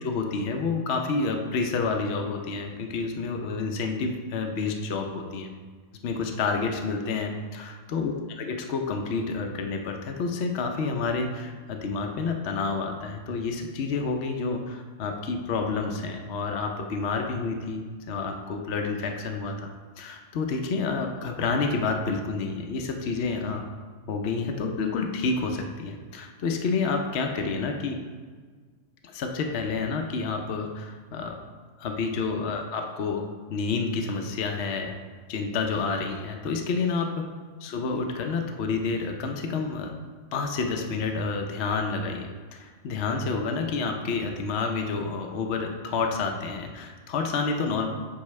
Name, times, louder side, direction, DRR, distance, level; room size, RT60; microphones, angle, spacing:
voice 1, 0.0-5.5 6.0-19.7 20.0-23.6 24.1-28.0 29.0-31.4 31.8-33.2 33.5-34.9 35.3-37.2 37.6-39.9 40.3-47.9, left 4 dB, 65° left, 3 dB, 0.9 m, -29 dB
8.4 x 5.5 x 3.2 m, 1.5 s
omnidirectional pair, 1.3 m